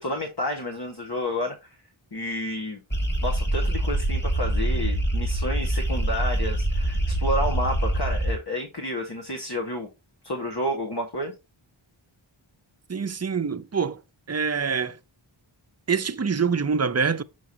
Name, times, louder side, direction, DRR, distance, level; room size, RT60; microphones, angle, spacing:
voice 1, 0.0-1.7 2.1-2.8 3.2-9.9 10.2-11.3, left 1 dB, 50° left, 1.8 m, -30 dB
sound 1, 2.9-8.4, right 1 dB, 20° left, 2.3 m, -25 dB
voice 2, 12.9-14.0 14.3-15.0 15.9-17.2, right 5 dB, 30° right, 0.6 m, -25 dB
7.0 x 6.3 x 2.8 m
wide cardioid pair, 55°, 49 cm